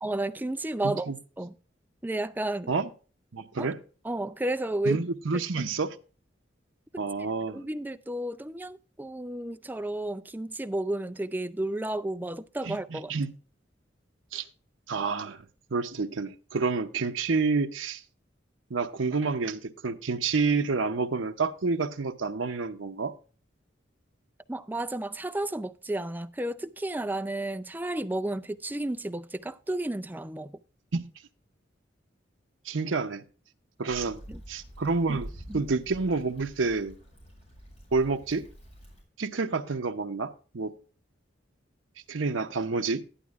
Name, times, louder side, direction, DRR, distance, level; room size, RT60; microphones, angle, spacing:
voice 1, 0.0-1.1 1.4-1.5 2.0-2.7 3.6-3.7 4.0-5.0 5.3-5.4 6.9-7.0 7.5-13.1 24.5-30.5 34.3-34.4 35.5-35.6, right 1 dB, 10° right, 0.5 m, -32 dB
voice 2, 0.8-1.2 2.7-2.9 3.3-3.8 4.8-6.0 7.0-7.6 12.6-13.3 14.3-14.4 14.9-15.4 15.7-18.0 18.7-23.1 30.9-31.1 32.6-33.2 33.8-34.2 34.5-36.9 37.9-38.5 39.2-40.7 42.1-43.0, right 4 dB, 85° right, 0.7 m, -29 dB
Stream / Traffic noise roadway noise / Trickle dribble, 33.9-39.0, equal, 35° left, 6.5 m, -47 dB
12.0 x 11.5 x 2.4 m
head